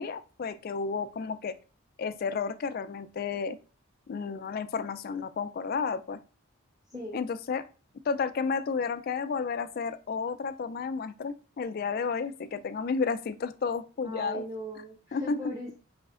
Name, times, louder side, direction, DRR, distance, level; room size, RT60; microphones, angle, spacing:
voice 1, 0.0-1.5 2.0-3.6 4.1-6.2 7.1-7.6 8.1-14.4 15.1-15.5, left 5 dB, 45° left, 11 dB, 0.3 m, -32 dB
voice 2, 14.0-15.8, equal, 20° right, -3 dB, 0.9 m, -39 dB
4.9 x 3.1 x 2.4 m, 0.35 s
head